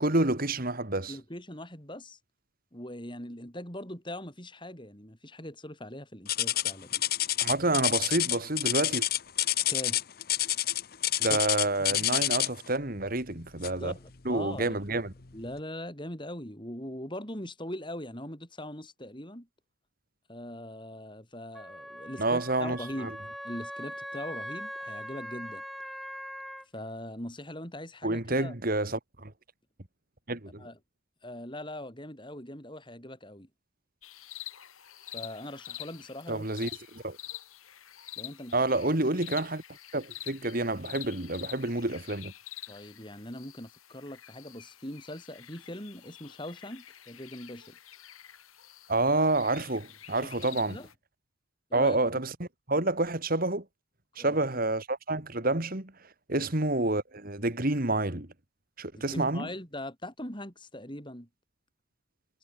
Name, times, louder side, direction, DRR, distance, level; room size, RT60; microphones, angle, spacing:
voice 1, 0.0-1.2 7.4-9.1 11.2-13.9 14.3-15.1 22.2-23.1 28.0-29.3 30.3-30.7 36.3-37.2 38.5-39.6 39.9-42.3 48.9-50.8 51.7-53.6 54.2-55.9 56.3-58.3 58.8-59.5, right 2 dB, 45° right, 2.3 m, -28 dB
voice 2, 1.1-2.2 2.7-7.4 9.7-10.0 11.2-11.4 11.9-12.2 13.8-14.8 15.3-19.5 20.3-25.6 26.7-28.5 30.6-30.8 31.2-33.5 35.1-36.7 38.2-38.6 42.7-47.8 50.2-50.9 51.7-52.0 54.2-54.4 56.3-56.5 58.9-61.3, left 1 dB, 25° left, 7.8 m, -41 dB
sound 1, 6.3-12.7 13.6-13.9 14.4-14.5 15.2-15.3, left 14 dB, 45° left, 1.0 m, -28 dB
Wind instrument woodwind instrument, 21.5-26.7, equal, ahead, 1.3 m, -41 dB
sound 2, 34.0-50.9, left 14 dB, 90° left, 4.2 m, -47 dB
head